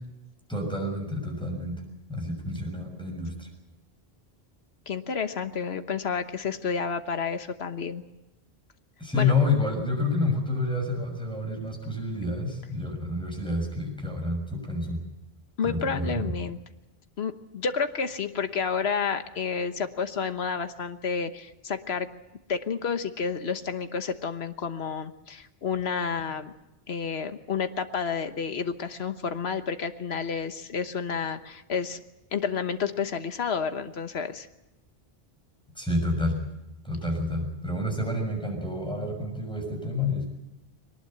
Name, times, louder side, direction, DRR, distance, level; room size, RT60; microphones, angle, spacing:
voice 1, 0.5-1.8 2.1-3.5 9.0-15.0 15.6-16.3 35.7-36.5 36.8-40.3, left 2 dB, 5° left, 2 dB, 6.7 m, -29 dB
voice 2, 4.9-8.0 9.1-9.3 15.6-16.6 17.2-22.1 22.5-26.5 26.9-32.0 32.3-34.5, left 6 dB, 80° left, 9 dB, 1.4 m, -30 dB
22.0 x 19.5 x 7.9 m, 0.95 s
omnidirectional pair, 1.1 m